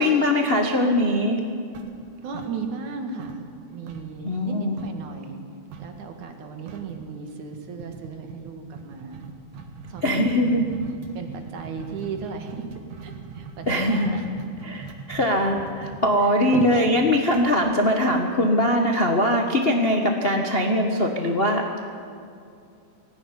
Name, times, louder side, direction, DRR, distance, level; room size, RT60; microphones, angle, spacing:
voice 1, 0.0-1.4 4.2-4.8 10.0-10.6 13.7-14.2 14.7-21.8, left 1 dB, 40° left, 2 dB, 0.8 m, -21 dB
sound 1, 1.7-2.9 3.2-5.1 5.7-6.0 6.3-6.4 6.7-7.0 7.8-18.6, right 6 dB, 60° right, 2.6 m, -42 dB
voice 2, 2.2-5.4 5.8-9.3 9.9-10.7 11.1-12.7 13.0-14.4 15.3-15.4 16.2-16.7, right 5 dB, 80° right, 5 dB, 3.3 m, -36 dB
19.0 x 16.5 x 9.8 m, 2.5 s
omnidirectional pair, 3.4 m